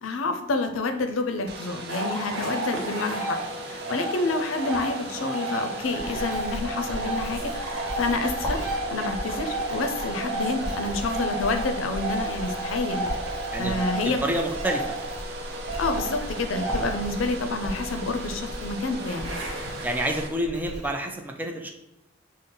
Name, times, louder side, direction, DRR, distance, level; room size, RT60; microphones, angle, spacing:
voice 1, 0.0-3.4 3.7-8.6 8.9-13.1 13.6-14.2 15.8-19.3, left 3 dB, 80° left, 6 dB, 0.5 m, -28 dB
Domestic sounds home sounds, 1.5-20.3, right 1 dB, 55° right, 0.6 m, -38 dB
sound 1, 1.9-20.4, right 2 dB, 85° right, 0.9 m, -33 dB
Writing, 5.8-20.9, equal, 15° left, 1.0 m, -37 dB
voice 2, 14.0-14.9 16.7-16.8 19.8-21.7, right 1 dB, 10° right, 2 dB, 0.4 m, -28 dB
5.4 x 2.1 x 3.8 m, 0.90 s
head